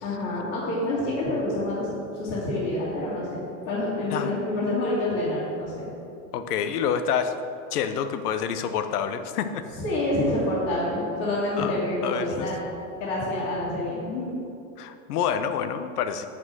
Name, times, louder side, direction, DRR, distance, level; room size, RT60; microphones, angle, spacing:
voice 1, 0.0-1.9 2.2-5.9 9.8-12.6 13.0-14.4, left 1 dB, 35° left, -10 dB, 2.0 m, -27 dB
voice 2, 6.3-7.3 7.7-9.6 11.6-12.5 14.8-16.3, left 8 dB, 90° left, 10 dB, 0.8 m, -28 dB
7.7 x 6.1 x 6.2 m, 2.6 s
supercardioid pair, 175°, 45 cm